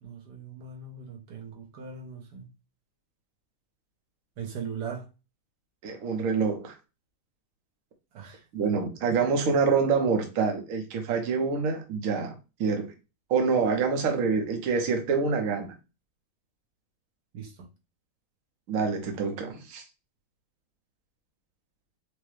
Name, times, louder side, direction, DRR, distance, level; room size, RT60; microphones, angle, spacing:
voice 1, 0.0-2.5 4.4-5.1 8.1-8.4 9.1-9.2 17.3-17.5, right 6 dB, 80° right, 1.5 m, -39 dB
voice 2, 5.8-6.8 8.5-12.3 12.6-12.9 13.3-15.7 18.7-19.8, right 5 dB, 60° right, 1.1 m, -26 dB
4.8 x 2.1 x 3.1 m
omnidirectional pair, 1.7 m